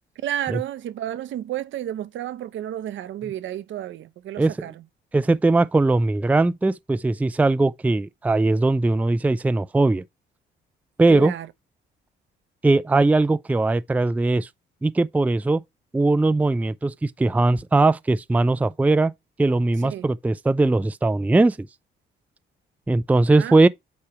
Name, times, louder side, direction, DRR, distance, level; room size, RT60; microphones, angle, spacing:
voice 1, 0.2-4.7 11.1-11.5 19.8-20.1 23.3-23.6, right 12 dB, 75° right, 0.9 m, -31 dB
voice 2, 4.4-4.7 5.1-10.0 11.0-11.3 12.6-14.5 14.8-15.6 15.9-19.1 19.4-21.7 22.9-23.7, right 2 dB, 5° right, 0.4 m, -20 dB
8.6 x 3.1 x 4.9 m
cardioid pair, 90°, 20 cm